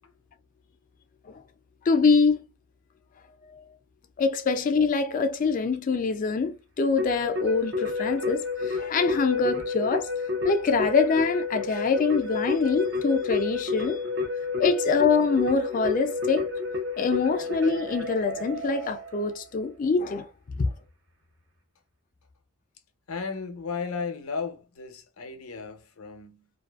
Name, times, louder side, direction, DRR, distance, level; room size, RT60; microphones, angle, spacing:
voice 1, 1.9-2.4 3.4-3.7 4.2-10.1 10.4-14.0 14.6-16.5 17.0-20.3 20.6-20.7, left 4 dB, 40° left, 0.3 m, -24 dB
voice 2, 3.1-3.6 23.1-26.5, left 5 dB, 75° left, 0.6 m, -35 dB
Keyboard (musical), 7.0-19.4, left 4 dB, 55° right, 0.7 m, -30 dB
2.5 x 2.4 x 2.3 m
head